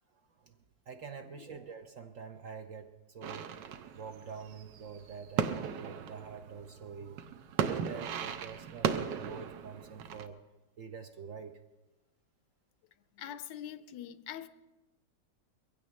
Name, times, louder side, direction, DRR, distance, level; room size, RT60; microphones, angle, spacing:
voice 1, 0.9-3.5 3.9-7.3 7.6-10.4 10.8-11.6, right 6 dB, 60° right, 0.9 m, -46 dB
sound 1, 3.2-10.3, right 7 dB, 80° right, 1.4 m, -36 dB
voice 2, 13.1-14.5, left 10 dB, 85° left, 1.3 m, -43 dB
22.0 x 15.5 x 3.1 m
omnidirectional pair, 1.9 m